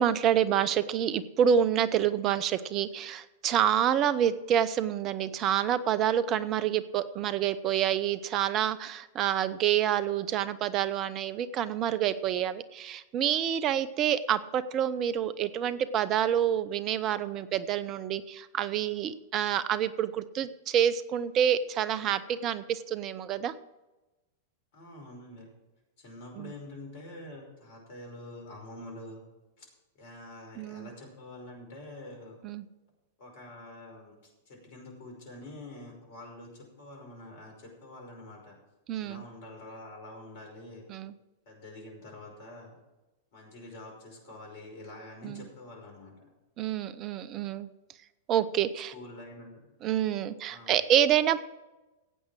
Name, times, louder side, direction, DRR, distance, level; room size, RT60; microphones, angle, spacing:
voice 1, 0.0-23.5 26.4-26.5 30.6-30.9 32.4-32.6 38.9-39.2 40.9-41.1 45.2-45.4 46.6-47.7 48.3-48.9 49.8-51.4, right 9 dB, 35° right, 16 dB, 0.7 m, -27 dB
voice 2, 24.7-25.5 26.0-29.2 29.6-29.7 30.0-32.4 33.2-38.6 39.0-40.9 41.5-42.7 43.3-46.3 48.9-49.7 50.5-50.9, left 2 dB, 55° left, 2 dB, 5.3 m, -46 dB
15.5 x 8.8 x 6.3 m, 1.1 s
figure-of-eight pair, 95°, 0 cm